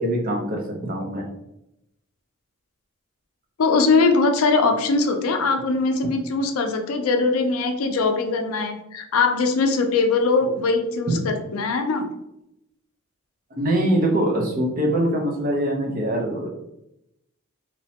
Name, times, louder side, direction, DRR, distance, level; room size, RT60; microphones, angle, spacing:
voice 1, 0.0-1.3 11.1-11.2 13.6-16.5, right 1 dB, 40° right, 0 dB, 0.6 m, -23 dB
voice 2, 3.6-12.1, left 3 dB, 80° left, 6 dB, 0.4 m, -21 dB
3.0 x 2.1 x 2.7 m, 0.83 s
head